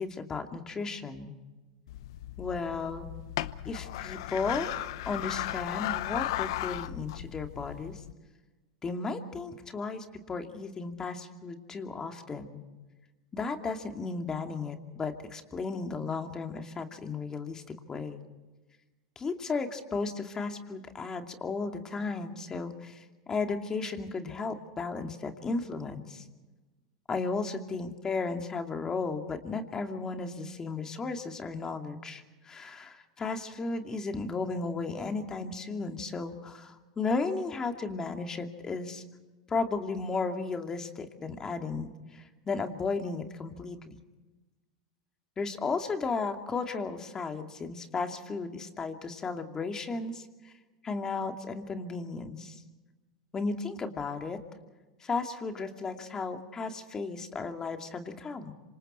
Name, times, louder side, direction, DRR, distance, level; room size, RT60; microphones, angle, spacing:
voice 1, 0.0-1.3 2.4-3.1 3.6-4.7 5.1-8.0 8.8-12.6 13.3-18.2 19.2-26.2 27.1-39.0 39.5-44.0 45.4-50.5 50.8-52.6 53.3-54.4 55.0-58.5, left 4 dB, 25° left, 5 dB, 2.6 m, -34 dB
sound 1, 1.9-8.1, left 15 dB, 70° left, 0.8 m, -36 dB
27.0 x 26.0 x 4.4 m, 1.2 s
hypercardioid pair, 110°, 3 cm